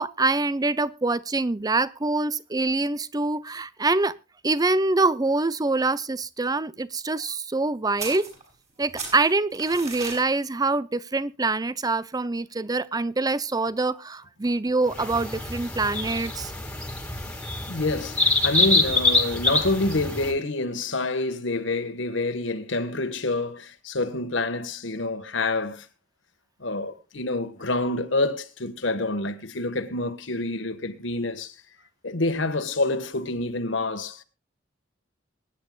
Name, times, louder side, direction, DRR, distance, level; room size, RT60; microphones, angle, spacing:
voice 1, 0.0-4.1 4.4-8.3 8.8-16.5, right 3 dB, 20° right, 0.6 m, -25 dB
sound 1, 8.0-8.7 9.0-10.2, right 4 dB, 35° right, 6.4 m, -36 dB
sound 2, 14.9-20.3, left 2 dB, 5° left, 2.3 m, -25 dB
voice 2, 17.7-25.9 26.6-31.5 32.0-34.2, left 2 dB, 75° left, 1.6 m, -27 dB
23.5 x 10.0 x 2.4 m
head